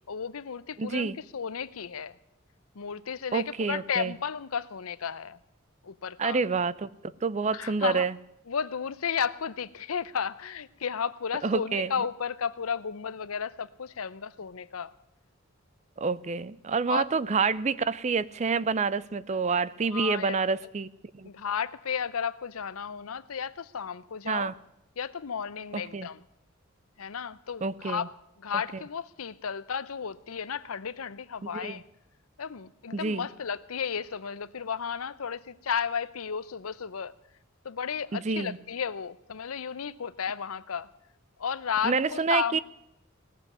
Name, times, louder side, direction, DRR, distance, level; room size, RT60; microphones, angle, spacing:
voice 1, 0.1-2.2 2.8-5.4 5.8-6.4 7.5-8.0 8.5-14.9 16.9-17.0 19.9-20.4 21.2-24.5 25.0-26.2 27.0-28.1 28.4-31.8 32.4-37.1 37.6-40.9 41.4-42.6, left 7 dB, 85° left, 17 dB, 0.7 m, -33 dB
voice 2, 0.8-1.2 3.3-4.1 6.2-6.9 7.2-8.2 11.4-11.9 16.0-20.9 21.2-21.3 24.3-24.5 25.7-26.1 27.6-28.1 28.7-28.8 31.5-31.8 32.9-33.3 38.1-38.6 41.8-42.6, right 4 dB, 35° right, 18 dB, 0.5 m, -28 dB
18.0 x 7.6 x 9.4 m, 0.85 s
head